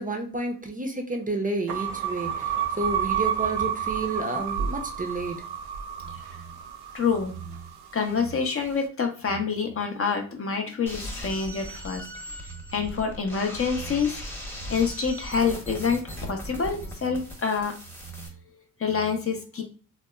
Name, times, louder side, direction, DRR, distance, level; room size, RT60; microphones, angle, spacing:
voice 1, 0.0-5.4, right 2 dB, 20° right, 4 dB, 0.5 m, -31 dB
sound 1, 1.7-8.0, right 8 dB, 75° right, 0.5 m, -30 dB
voice 2, 6.9-7.6 7.9-12.1 12.4-14.2 14.7-16.0 16.3-17.7 18.1-18.3 18.5-19.6, left 5 dB, 35° left, 4 dB, 0.6 m, -27 dB
sound 2, 10.9-18.3, equal, 5° left, 0.8 m, -38 dB
2.8 x 2.0 x 2.2 m, 0.36 s
supercardioid pair, 50°, 39 cm